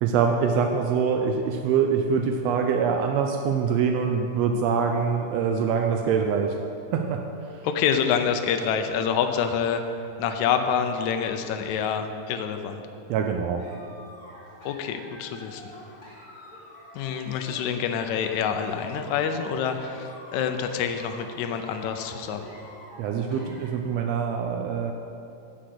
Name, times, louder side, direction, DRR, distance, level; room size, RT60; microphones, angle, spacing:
voice 1, 0.0-6.6 6.9-7.6 13.1-13.7 23.0-24.9, right 6 dB, 85° right, 4 dB, 1.4 m, -24 dB
voice 2, 7.6-12.8 14.7-15.7 16.9-22.5, left 7 dB, 75° left, 6 dB, 2.0 m, -27 dB
sound 1, 13.6-23.7, equal, 15° left, 2.1 m, -47 dB
10.5 x 6.4 x 7.8 m, 2.7 s
omnidirectional pair, 3.7 m